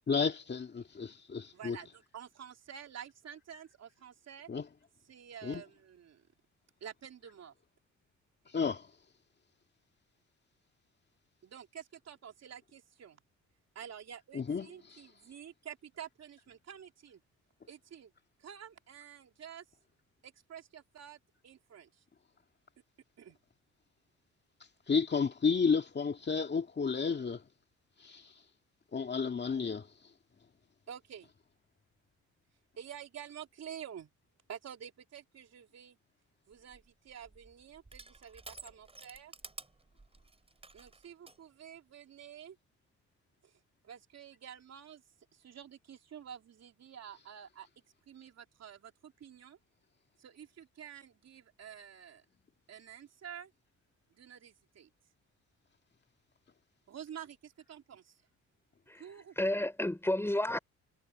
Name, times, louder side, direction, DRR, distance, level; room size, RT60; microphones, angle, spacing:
voice 1, 0.1-1.8 4.5-4.7 5.4-5.6 8.5-8.9 14.3-15.0 24.9-27.4 28.0-28.3 28.9-29.9, left 5 dB, 35° left, 2.3 m, -32 dB
voice 2, 1.5-4.5 5.1-6.2 6.8-7.5 11.4-13.2 13.8-17.2 17.7-18.1 18.4-19.7 20.2-21.9 23.2-23.4 30.9-31.3 32.8-34.1 34.5-36.0 36.5-39.3 40.7-42.6 43.4-43.5 43.8-45.0 45.3-47.7 48.1-49.6 50.2-52.2 52.7-53.5 54.1-54.9 56.9-58.2 58.9-59.6, right 9 dB, 55° right, 3.5 m, -49 dB
Crushing, 36.5-41.4, right 2 dB, 20° right, 4.8 m, -52 dB
voice 3, 58.9-60.6, left 1 dB, 10° left, 3.9 m, -32 dB
cardioid pair, 90°, 30 cm